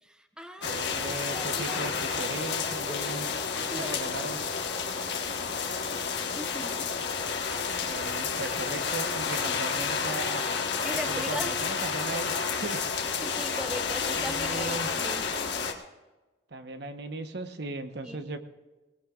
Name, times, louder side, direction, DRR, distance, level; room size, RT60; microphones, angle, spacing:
voice 1, 0.0-1.8 2.9-4.0 6.3-6.9 10.8-11.7 13.2-15.5 18.0-18.2, equal, 5° right, 5 dB, 1.0 m, -39 dB
sound 1, 0.6-15.7, left 5 dB, 60° left, 1.5 m, -30 dB
voice 2, 0.6-3.2 3.7-4.4 7.8-10.5 11.1-12.9 14.2-14.9 16.5-18.4, right 2 dB, 60° right, 7 dB, 1.1 m, -37 dB
21.5 x 19.0 x 2.5 m, 1.2 s
head